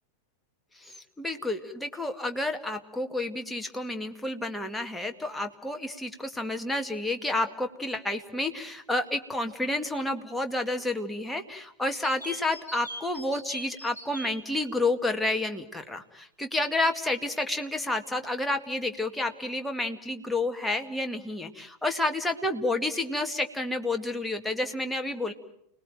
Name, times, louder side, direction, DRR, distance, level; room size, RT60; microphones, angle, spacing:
voice 1, 0.8-25.3, left 2 dB, 5° left, 4 dB, 2.1 m, -30 dB
sound 1, 11.9-14.3, right 1 dB, 85° right, 5.8 m, -40 dB
29.5 x 19.5 x 9.2 m, 0.78 s
figure-of-eight pair, 90°, 0 cm